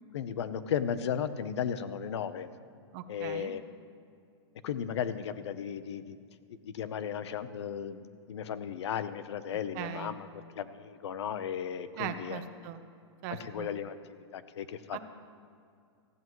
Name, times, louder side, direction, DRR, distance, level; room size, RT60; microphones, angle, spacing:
voice 1, 0.1-2.5 3.1-3.7 4.6-6.2 6.6-10.3 10.6-12.4 13.4-15.0, left 8 dB, 75° left, 13 dB, 0.8 m, -35 dB
voice 2, 2.9-3.5 9.8-10.1 12.0-12.8 13.2-13.7 14.9-15.0, right 10 dB, 40° right, 8 dB, 0.8 m, -39 dB
18.5 x 15.0 x 3.1 m, 2.4 s
supercardioid pair, 155°, 15 cm